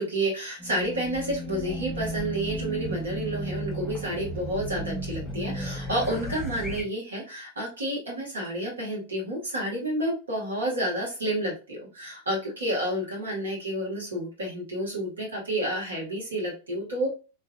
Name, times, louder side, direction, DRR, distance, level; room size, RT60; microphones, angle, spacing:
voice 1, 0.0-17.1, right 1 dB, 70° right, -3 dB, 1.9 m, -30 dB
Race car auto racing / Alarm, 0.6-6.8, right 1 dB, 5° left, 1.3 m, -34 dB
3.6 x 3.1 x 2.3 m, 0.33 s
figure-of-eight pair, 90°, 0 cm